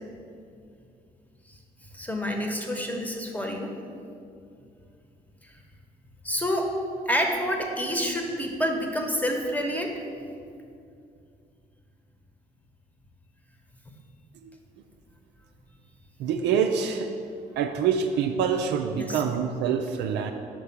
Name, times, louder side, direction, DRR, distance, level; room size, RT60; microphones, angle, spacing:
voice 1, 1.9-3.7 5.4-5.5 6.2-6.7 7.1-9.9 19.0-19.2, equal, 10° left, 2 dB, 1.0 m, -28 dB
voice 2, 16.2-17.1 17.6-20.3, right 7 dB, 60° right, 5 dB, 0.4 m, -26 dB
5.5 x 4.5 x 5.9 m, 2.4 s
figure-of-eight pair, 45°, 20 cm